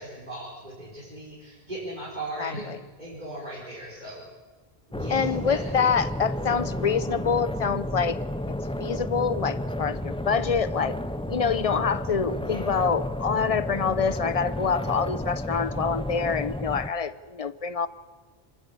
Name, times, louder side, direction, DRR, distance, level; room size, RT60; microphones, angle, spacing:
voice 1, 0.0-2.7 3.0-4.2 4.9-5.9 12.3-12.6, right 1 dB, 45° right, -6 dB, 4.8 m, -38 dB
voice 2, 2.4-2.8 5.1-8.2 8.5-11.0 11.3-17.9, left 6 dB, 40° left, 15 dB, 0.7 m, -26 dB
sound 1, 4.9-16.9, left 1 dB, 5° left, 0.5 m, -32 dB
26.5 x 11.5 x 8.5 m, 1.4 s
omnidirectional pair, 1.1 m